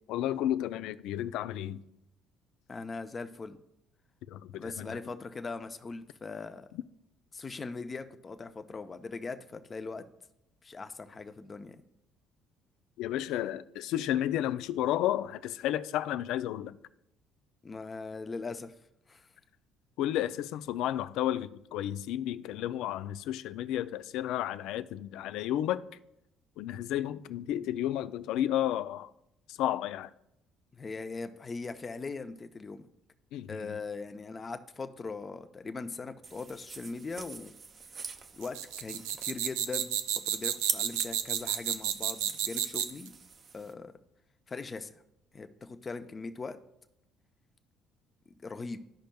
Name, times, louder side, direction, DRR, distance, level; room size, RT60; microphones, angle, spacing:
voice 1, 0.1-1.8 4.3-5.0 6.7-6.8 13.0-16.8 20.0-25.8 26.6-29.1 29.5-30.1 33.3-33.8, left 12 dB, 75° left, 0.3 m, -32 dB
voice 2, 2.7-3.6 4.5-6.7 7.3-10.0 10.6-11.8 17.6-18.7 19.1-19.3 30.7-32.9 33.5-37.5 38.3-39.9 40.2-43.1 43.5-43.9 44.5-45.0 45.3-46.6 48.4-48.8, left 4 dB, 35° left, 0.7 m, -40 dB
sound 1, 36.2-43.7, right 5 dB, 45° right, 0.7 m, -43 dB
sound 2, 38.4-43.1, right 11 dB, 85° right, 0.4 m, -31 dB
13.0 x 5.1 x 2.3 m
hypercardioid pair, 65°, 0 cm